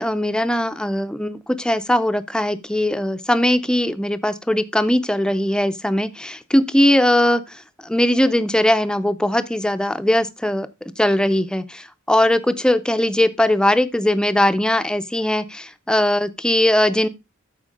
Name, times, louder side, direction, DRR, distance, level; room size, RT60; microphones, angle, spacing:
voice 1, 0.0-7.4 7.9-10.7 11.0-17.1, left 1 dB, 5° left, 0.5 m, -19 dB
13.5 x 4.5 x 3.8 m
head